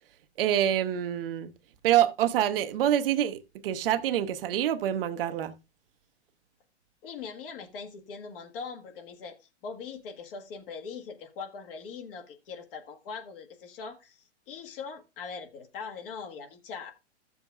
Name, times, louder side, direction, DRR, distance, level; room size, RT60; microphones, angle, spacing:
voice 1, 0.4-1.5 1.8-5.5, right 11 dB, 55° right, 0.8 m, -26 dB
voice 2, 7.0-9.4 9.6-16.9, left 5 dB, 50° left, 1.6 m, -41 dB
13.5 x 7.1 x 2.3 m
hypercardioid pair, 135°, 35 cm